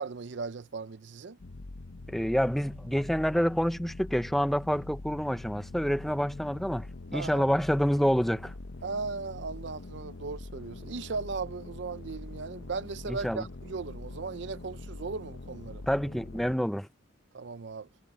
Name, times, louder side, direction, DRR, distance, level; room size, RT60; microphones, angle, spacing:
voice 1, 0.0-1.4 7.1-7.5 8.8-15.9 17.3-17.9, right 4 dB, 60° right, 0.5 m, -37 dB
sound 1, 1.4-16.6, left 2 dB, 75° left, 0.8 m, -44 dB
voice 2, 2.1-6.9 7.1-8.5 13.1-13.4 15.9-16.9, equal, ahead, 0.6 m, -27 dB
head